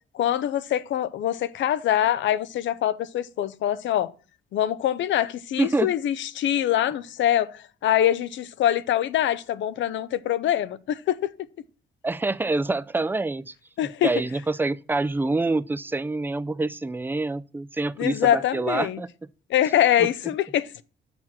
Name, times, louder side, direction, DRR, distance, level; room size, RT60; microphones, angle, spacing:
voice 1, 0.1-4.1 4.5-11.3 13.8-14.1 18.0-19.0 19.5-20.8, left 11 dB, 70° left, 0.6 m, -24 dB
voice 2, 5.6-5.9 12.0-13.5 13.8-19.1 20.0-20.1, right 2 dB, 10° right, 0.4 m, -26 dB
6.9 x 5.8 x 6.1 m
cardioid pair, 90°, 20 cm